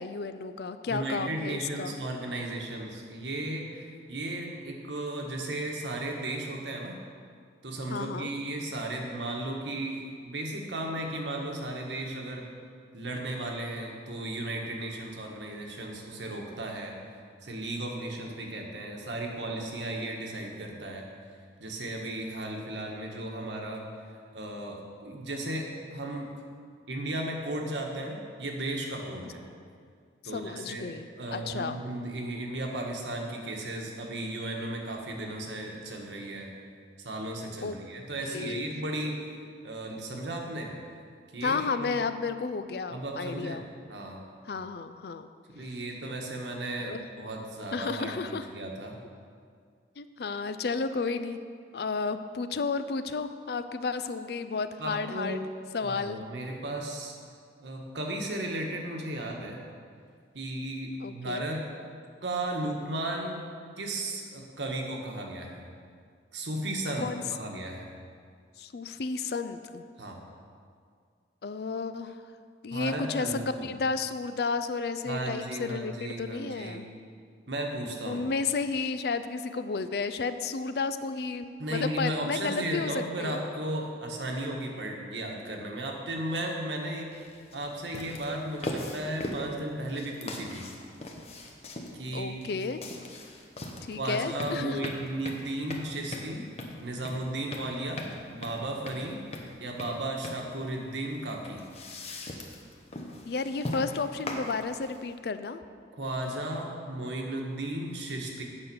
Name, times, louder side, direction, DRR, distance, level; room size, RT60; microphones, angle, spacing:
voice 1, 0.0-2.0 7.9-8.3 30.3-31.8 37.6-37.8 38.3-38.6 41.4-43.7 44.5-45.3 46.8-47.1 47.7-48.5 50.0-51.4 51.7-55.5 55.7-56.2 61.0-61.4 67.0-67.2 68.6-69.9 71.4-72.2 72.6-76.9 78.1-83.4 92.1-92.8 93.9-94.9 103.2-105.6, left 4 dB, 60° left, 11 dB, 0.4 m, -32 dB
voice 2, 0.9-7.0 7.6-12.4 12.9-16.9 17.4-21.1 21.6-23.8 24.3-26.3 26.9-29.4 30.2-36.5 37.0-39.2 39.6-40.7 41.3-41.9 42.9-43.6 43.9-44.2 45.5-49.0 54.8-55.4 55.8-57.2 57.6-59.6 60.3-61.6 62.2-63.5 63.8-65.6 66.3-67.9 70.0-70.2 72.7-73.7 75.0-76.8 77.5-78.2 81.6-87.1 87.5-90.7 92.0-92.6 93.9-96.4 96.8-99.2 99.6-101.6 106.0-108.4, right 1 dB, 85° right, 1 dB, 1.4 m, -35 dB
sound 1, 87.1-105.2, left 1 dB, 35° left, 0.9 m, -40 dB
9.0 x 5.8 x 6.9 m, 2.1 s
head